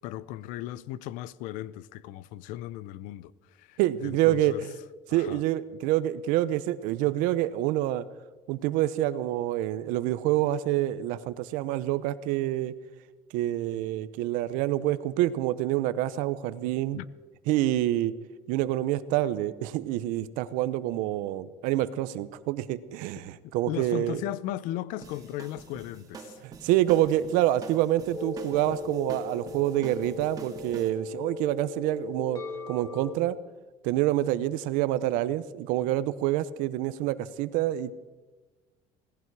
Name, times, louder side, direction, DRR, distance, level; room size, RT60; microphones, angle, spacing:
voice 1, 0.0-3.3 3.6-4.6 5.1-5.4 16.9-17.1 23.7-26.4, left 13 dB, 80° left, 0.6 m, -36 dB
voice 2, 3.8-4.7 5.1-8.1 8.5-12.7 13.3-17.0 17.5-18.1 18.5-24.2 26.4-33.4 33.8-37.9, right 14 dB, 90° right, 0.8 m, -27 dB
sound 1, 25.0-30.9, right 4 dB, 25° right, 2.1 m, -45 dB
sound 2, 28.1-33.1, left 3 dB, 25° left, 2.6 m, -38 dB
18.0 x 15.5 x 4.8 m
cardioid pair, 160°, 13 cm